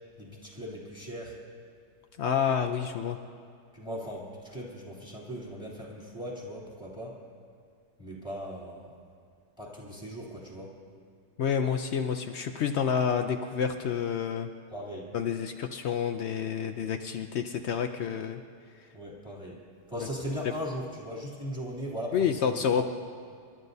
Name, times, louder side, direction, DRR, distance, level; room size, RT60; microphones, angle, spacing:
voice 1, 0.2-1.4 3.7-7.2 8.0-8.9 9.6-10.8 14.7-15.1 18.9-22.8, equal, 5° right, -4 dB, 2.9 m, -39 dB
voice 2, 2.2-3.2 11.4-14.5 15.1-18.4 20.0-20.1 22.1-22.8, left 7 dB, 85° left, 6 dB, 0.6 m, -29 dB
28.0 x 12.5 x 2.7 m, 2.4 s
omnidirectional pair, 1.9 m